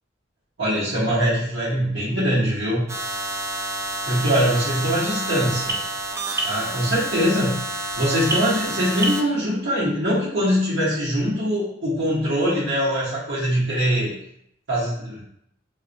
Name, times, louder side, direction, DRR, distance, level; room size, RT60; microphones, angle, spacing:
voice 1, 0.6-2.8 4.1-5.6 6.4-7.6 8.0-14.1 14.7-15.2, equal, 65° right, -8 dB, 1.0 m, -22 dB
sound 1, 2.9-9.2, right 2 dB, 15° right, 0.3 m, -28 dB
3.9 x 2.4 x 2.5 m, 0.72 s
head